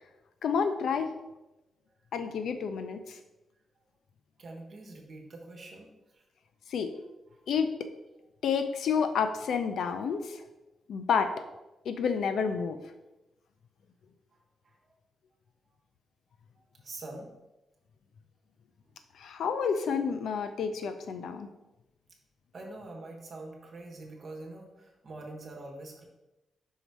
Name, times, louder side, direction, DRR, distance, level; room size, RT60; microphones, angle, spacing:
voice 1, 0.4-1.1 2.1-3.2 6.7-6.9 7.5-7.7 8.4-10.4 10.9-11.4 11.9-12.8 19.2-21.5, left 6 dB, 65° left, 8 dB, 0.5 m, -29 dB
voice 2, 4.4-6.2 6.9-7.0 7.3-7.4 14.3-14.4 14.6-14.8 16.8-17.3 22.5-26.0, right 2 dB, 40° right, 0 dB, 1.3 m, -45 dB
5.6 x 4.1 x 4.6 m, 0.99 s
wide cardioid pair, 170°, 0 cm